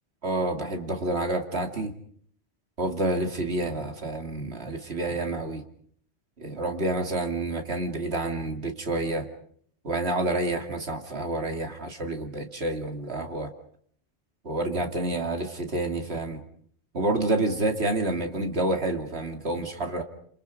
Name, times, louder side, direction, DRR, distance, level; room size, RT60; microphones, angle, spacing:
voice 1, 0.2-1.9 2.8-5.6 6.4-9.3 9.8-13.5 14.4-16.4 16.9-20.0, right 2 dB, 70° right, 4 dB, 2.7 m, -28 dB
28.0 x 27.5 x 5.1 m, 0.62 s
omnidirectional pair, 1.1 m